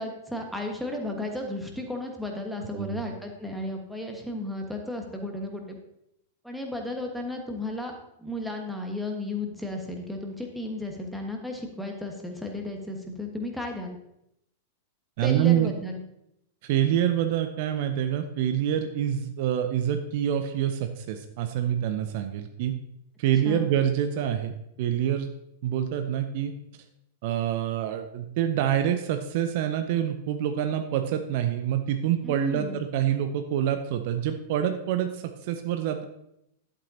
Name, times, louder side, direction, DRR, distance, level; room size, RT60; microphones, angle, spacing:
voice 1, 0.0-5.8 6.4-14.0 15.2-16.0 23.4-23.7 32.2-32.8, left 2 dB, ahead, 2 dB, 1.4 m, -34 dB
voice 2, 15.2-15.7 16.6-22.7 23.2-25.3 25.6-26.5 27.2-36.0, right 10 dB, 50° right, 7 dB, 0.6 m, -26 dB
11.5 x 8.1 x 2.8 m, 0.80 s
figure-of-eight pair, 95°, 0 cm